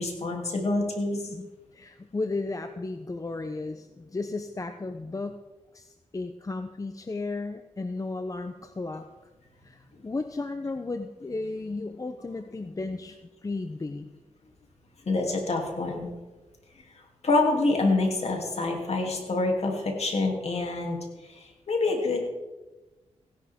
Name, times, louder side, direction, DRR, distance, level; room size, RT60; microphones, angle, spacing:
voice 1, 0.0-1.2 15.1-16.1 17.2-21.0 21.7-22.2, left 2 dB, 50° left, 1 dB, 2.9 m, -26 dB
voice 2, 1.7-5.4 5.7-9.3 9.6-14.1, left 3 dB, 25° left, 8 dB, 0.7 m, -34 dB
16.5 x 11.0 x 3.6 m, 1.1 s
cardioid pair, 75°, 13 cm